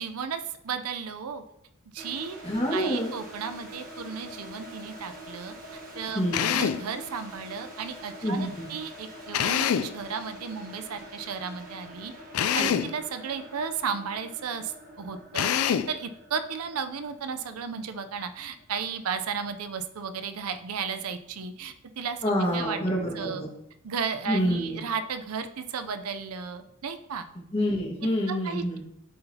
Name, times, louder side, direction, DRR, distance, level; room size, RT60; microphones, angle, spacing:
voice 1, 0.0-1.4 1.9-2.4 2.7-22.2 22.5-22.8 23.1-23.4 23.8-27.3 28.3-28.8, right 6 dB, 90° right, 9 dB, 0.6 m, -34 dB
sound 1, 2.0-18.8, equal, 40° right, 1.3 m, -45 dB
voice 2, 2.4-3.1 6.1-6.4 8.2-8.6 12.6-12.8 22.2-23.5 24.3-24.8 27.5-28.8, equal, 25° left, -2 dB, 1.6 m, -27 dB
Drill, 6.3-6.9 9.3-10.0 12.3-13.0 15.3-16.0, left 9 dB, 80° left, 0.4 m, -25 dB
11.5 x 3.9 x 2.8 m, 0.78 s
head